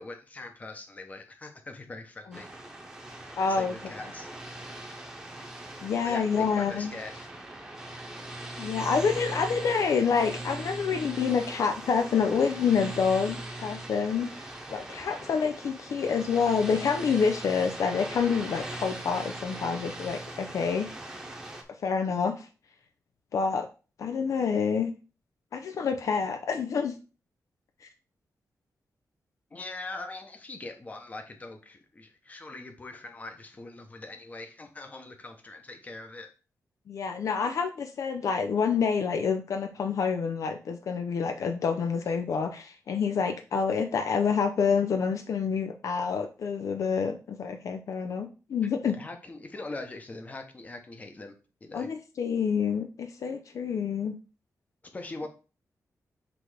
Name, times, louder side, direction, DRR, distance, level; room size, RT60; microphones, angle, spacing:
voice 1, 0.0-2.5 3.2-4.3 6.0-7.3 29.5-36.3 48.9-51.3 51.6-51.9 54.9-55.3, left 2 dB, 25° left, 5 dB, 0.9 m, -42 dB
sound 1, 2.3-21.6, right 1 dB, 10° right, 1.0 m, -40 dB
voice 2, 3.4-3.7 5.8-6.9 8.6-14.4 14.7-20.9 21.8-22.5 23.3-23.7 24.0-24.9 25.5-26.9 27.8-27.9 36.9-49.0 51.7-54.1, left 6 dB, 65° left, 7 dB, 0.5 m, -27 dB
6.0 x 3.4 x 4.8 m, 0.34 s
wide cardioid pair, 165°, 6 cm